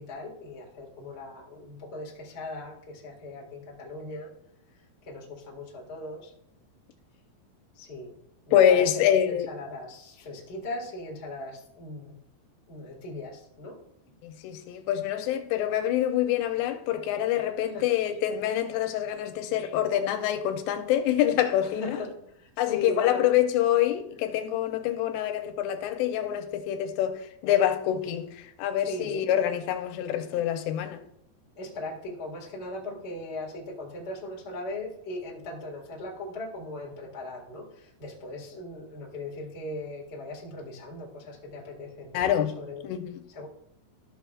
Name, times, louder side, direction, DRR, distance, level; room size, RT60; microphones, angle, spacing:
voice 1, 0.0-4.3 5.0-6.3 7.7-8.1 8.5-12.1 12.7-13.8 17.7-17.9 21.6-23.3 28.9-29.3 31.5-42.3 42.6-42.9 43.3-43.5, left 2 dB, 50° left, 0.7 m, -38 dB
voice 2, 8.5-9.5 14.2-22.0 22.6-31.0 42.1-42.5 42.8-43.2, left 11 dB, 80° left, 2.7 m, -26 dB
13.5 x 6.9 x 2.4 m
omnidirectional pair, 4.9 m